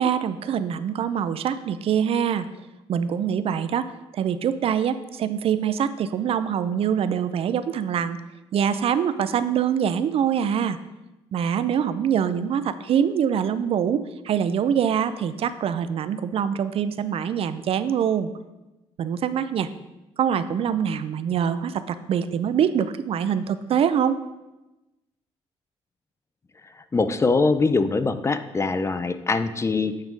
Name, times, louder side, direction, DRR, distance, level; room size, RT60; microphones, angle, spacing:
voice 1, 0.0-2.5 2.9-8.2 8.5-10.8 11.3-18.3 19.0-19.7 20.2-24.2, right 8 dB, 60° right, 13 dB, 0.4 m, -24 dB
voice 2, 26.8-30.0, left 3 dB, 25° left, 11 dB, 0.5 m, -23 dB
8.8 x 3.6 x 5.2 m, 1.0 s
cardioid pair, 75°, 11 cm